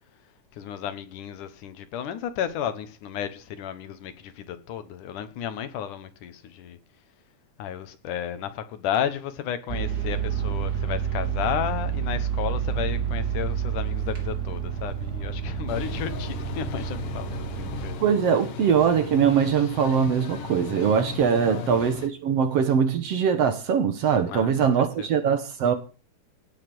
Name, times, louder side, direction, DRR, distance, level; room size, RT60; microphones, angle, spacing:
voice 1, 0.5-6.8 7.6-18.0 21.4-21.7 24.3-25.1, left 9 dB, 80° left, 2.7 m, -33 dB
sound 1, 9.7-18.0, right 8 dB, 30° right, 3.7 m, -29 dB
sound 2, 15.7-22.1, left 8 dB, 60° left, 1.8 m, -37 dB
voice 2, 18.0-25.7, right 7 dB, 60° right, 1.9 m, -22 dB
17.0 x 7.1 x 6.2 m
omnidirectional pair, 3.6 m